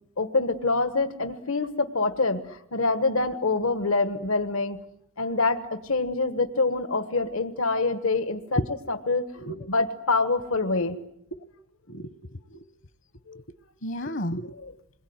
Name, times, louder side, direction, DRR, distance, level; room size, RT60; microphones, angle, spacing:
voice 1, 0.2-4.8 5.2-8.6 8.9-9.3 9.7-11.0 13.3-13.4, left 3 dB, 85° left, 10 dB, 1.4 m, -25 dB
voice 2, 11.9-12.7 13.8-14.5, equal, 60° left, 14 dB, 1.0 m, -32 dB
27.5 x 21.5 x 9.5 m, 0.75 s
head